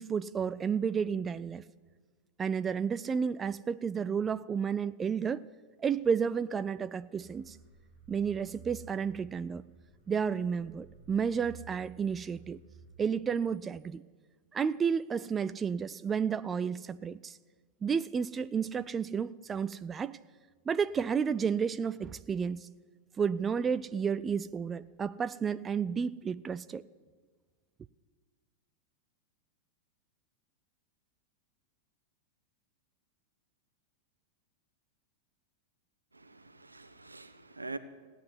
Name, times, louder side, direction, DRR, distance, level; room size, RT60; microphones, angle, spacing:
voice 1, 0.0-1.6 2.4-5.4 5.8-7.6 8.1-9.6 10.1-12.6 13.0-14.0 14.5-17.4 17.8-20.2 20.7-22.7 23.2-26.8, right 6 dB, 20° right, 15 dB, 0.4 m, -31 dB
sound 1, 7.1-13.7, right 6 dB, 65° left, 4.4 m, -54 dB
voice 2, 36.2-37.8, right 3 dB, 85° right, 12 dB, 0.9 m, -44 dB
16.5 x 9.1 x 9.6 m, 1.4 s
figure-of-eight pair, 90°, 0 cm